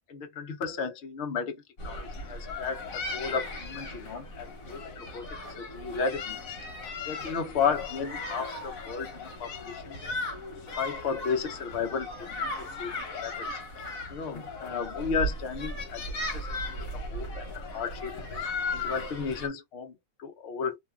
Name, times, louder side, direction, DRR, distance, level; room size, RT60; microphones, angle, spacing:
voice 1, 0.1-6.4 7.1-10.0 10.7-12.5 12.8-13.5 14.1-16.0 16.3-18.2 18.7-20.8, left 6 dB, 55° left, 0.8 m, -34 dB
sound 1, 1.8-19.5, left 2 dB, 85° left, 1.3 m, -37 dB
3.0 x 2.2 x 2.3 m
omnidirectional pair, 1.4 m